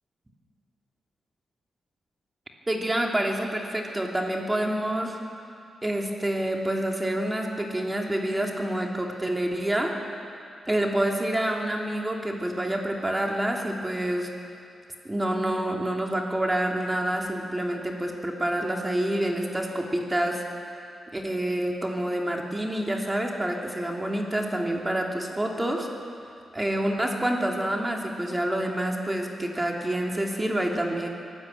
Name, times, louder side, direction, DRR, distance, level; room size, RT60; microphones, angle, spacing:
voice 1, 2.7-5.2 5.8-9.9 10.7-14.3 15.0-20.4 21.1-25.9 26.5-31.1, right 1 dB, 15° right, 0 dB, 3.0 m, -27 dB
23.0 x 13.0 x 8.7 m, 2.5 s
cardioid pair, 70°, 0 cm